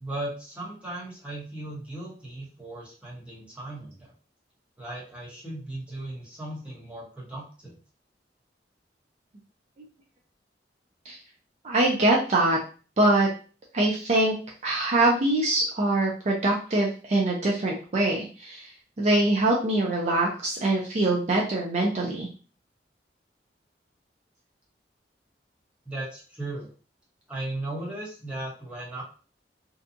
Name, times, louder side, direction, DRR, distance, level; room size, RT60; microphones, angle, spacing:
voice 1, 0.0-4.1 4.8-7.7 25.8-26.7 27.3-29.0, right 2 dB, 5° right, -5 dB, 0.9 m, -37 dB
voice 2, 11.6-12.6 13.0-13.3 13.7-14.3 14.6-18.7 19.0-22.3, right 2 dB, 40° right, -2 dB, 0.4 m, -23 dB
2.6 x 2.3 x 2.5 m, 0.38 s
head